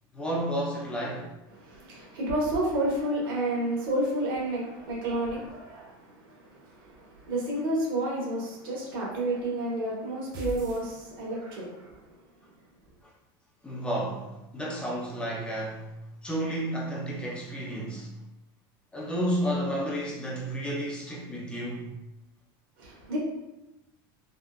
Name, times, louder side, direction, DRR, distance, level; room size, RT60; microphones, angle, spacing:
voice 1, 0.1-1.3 13.6-15.9 16.2-18.1 18.9-21.9, equal, 10° left, -5 dB, 0.5 m, -31 dB
voice 2, 1.5-12.0 22.8-23.2, right 1 dB, 85° right, -5 dB, 1.4 m, -30 dB
sound 1, 10.3-11.6, left 1 dB, 40° right, 0.6 m, -39 dB
3.6 x 2.3 x 2.3 m, 0.97 s
supercardioid pair, 170°, 11 cm